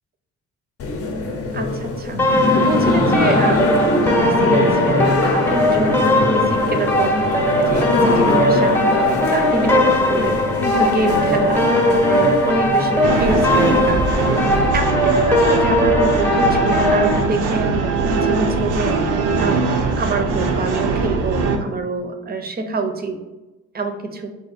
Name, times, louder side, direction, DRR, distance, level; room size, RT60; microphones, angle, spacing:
sound 1, 0.8-14.7, left 3 dB, 50° left, 0.6 m, -22 dB
voice 1, 1.5-10.4 10.8-14.4 14.7-23.2 23.7-24.3, right 3 dB, 30° right, 6 dB, 0.5 m, -26 dB
sound 2, 2.2-17.2, left 1 dB, 5° left, 0.7 m, -19 dB
sound 3, 13.0-21.6, right 4 dB, 90° right, 0.6 m, -21 dB
3.5 x 2.6 x 4.0 m, 1.1 s
cardioid pair, 90°, 30 cm